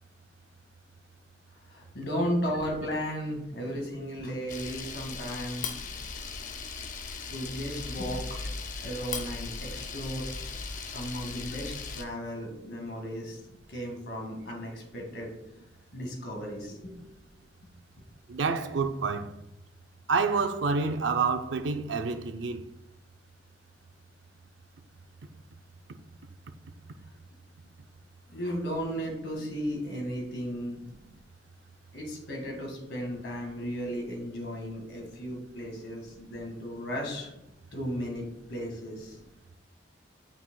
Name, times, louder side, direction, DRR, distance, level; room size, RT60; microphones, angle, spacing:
voice 1, 1.7-5.7 7.3-8.2 8.8-10.3 10.8-13.4 13.7-15.3 15.9-16.9 28.3-30.7 31.9-37.3 37.7-39.2, equal, 70° left, 1.8 m, -35 dB
Camera, 4.5-12.0, left 4 dB, 45° left, 0.6 m, -38 dB
voice 2, 18.3-19.3 20.1-22.6, right 4 dB, 85° right, 0.5 m, -28 dB
8.8 x 5.4 x 2.2 m
head